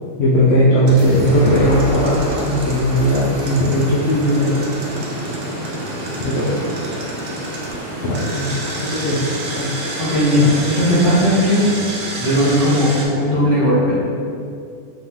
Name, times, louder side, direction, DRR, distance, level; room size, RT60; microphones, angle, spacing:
voice 1, 0.2-4.6 6.2-6.6 8.0-8.5 8.8-9.7, equal, 65° left, -7 dB, 0.8 m, -17 dB
sound 1, 0.9-11.2, right 1 dB, 65° right, 1.4 m, -32 dB
Engine, 0.9-7.7 8.1-13.1, right 2 dB, 85° right, 1.1 m, -31 dB
sound 2, 1.0-7.8 8.2-8.3, equal, 25° left, 0.8 m, -30 dB
voice 2, 10.0-11.6 12.2-14.0, equal, 45° left, -11 dB, 1.6 m, -16 dB
4.0 x 2.8 x 3.5 m, 2.4 s
omnidirectional pair, 1.3 m